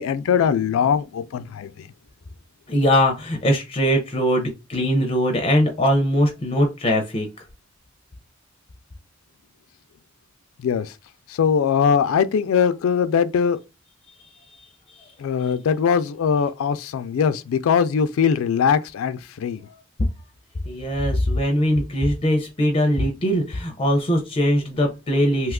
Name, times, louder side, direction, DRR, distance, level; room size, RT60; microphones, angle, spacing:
voice 1, 0.0-1.7 10.6-10.9 11.4-13.6 15.2-19.6, left 7 dB, 90° left, 0.3 m, -21 dB
voice 2, 2.7-7.3 20.7-25.5, equal, 30° left, 0.5 m, -21 dB
2.8 x 2.3 x 3.5 m
head